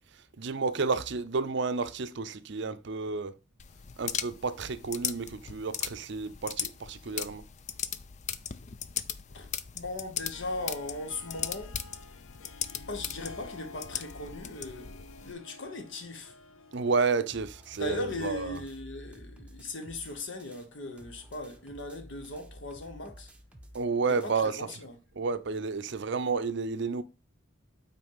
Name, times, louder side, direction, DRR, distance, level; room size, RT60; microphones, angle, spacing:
voice 1, 0.4-3.3 4.0-7.5 16.7-18.6 23.7-24.7 25.2-27.0, right 4 dB, 60° right, 0.6 m, -31 dB
sound 1, 3.6-15.3, left 9 dB, 35° left, 0.4 m, -38 dB
voice 2, 9.3-11.8 12.9-16.3 17.7-23.3 24.0-24.9, left 2 dB, 60° left, 1.1 m, -38 dB
Harp, 10.3-18.0, left 3 dB, 85° left, 0.7 m, -51 dB
sound 2, 17.3-20.7 21.0-24.4, equal, 5° right, 0.8 m, -51 dB
6.0 x 4.4 x 5.4 m
head